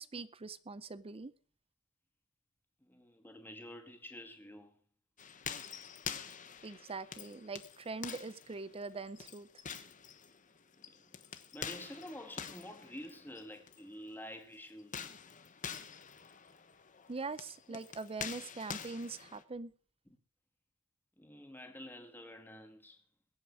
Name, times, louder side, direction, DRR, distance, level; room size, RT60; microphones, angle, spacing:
voice 1, 0.0-1.3 6.6-9.5 17.1-19.7, right 3 dB, 25° right, 0.6 m, -43 dB
voice 2, 2.8-4.8 10.8-11.2 11.5-15.1 17.7-17.8 21.2-23.0, left 1 dB, 10° left, 2.1 m, -49 dB
sound 1, 5.2-13.8 14.8-19.4, left 7 dB, 35° left, 1.1 m, -46 dB
22.0 x 8.5 x 4.8 m
head